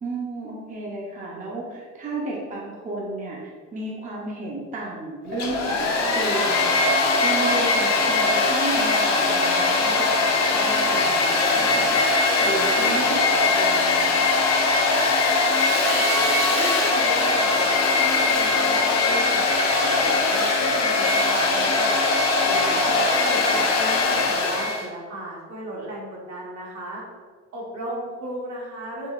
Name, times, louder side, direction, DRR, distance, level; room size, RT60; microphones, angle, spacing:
voice 1, 0.0-6.8 7.2-14.2 22.5-23.0, right 2 dB, 25° right, -4 dB, 0.6 m, -33 dB
Domestic sounds home sounds, 5.3-24.9, left 3 dB, 60° left, 0.6 m, -21 dB
voice 2, 15.9-19.5 19.8-22.0 22.4-27.0 27.5-29.1, right 1 dB, 65° right, -4 dB, 1.0 m, -35 dB
3.7 x 2.2 x 2.3 m, 1.5 s
cardioid pair, 90°, 30 cm